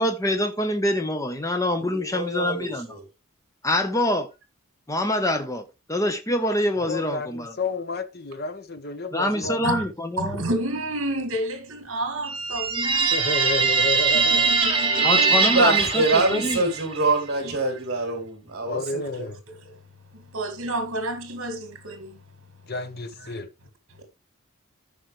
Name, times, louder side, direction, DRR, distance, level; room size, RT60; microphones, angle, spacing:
voice 1, 0.0-2.9 3.6-4.3 4.9-7.6 9.1-10.4 15.0-16.7, left 1 dB, 15° left, 1.1 m, -25 dB
voice 2, 1.8-3.0 14.9-19.3, right 2 dB, 45° right, 3.1 m, -26 dB
voice 3, 6.8-9.7 13.1-14.5 18.6-19.4 22.7-23.5, left 3 dB, 45° left, 1.1 m, -31 dB
voice 4, 10.2-13.9 14.1-15.4 17.4-17.5 19.5-19.8 20.1-22.2 23.2-23.3, right 1 dB, 65° right, 2.0 m, -31 dB
sound 1, 12.2-17.0, right 5 dB, 25° right, 1.4 m, -22 dB
14.5 x 5.4 x 3.3 m
head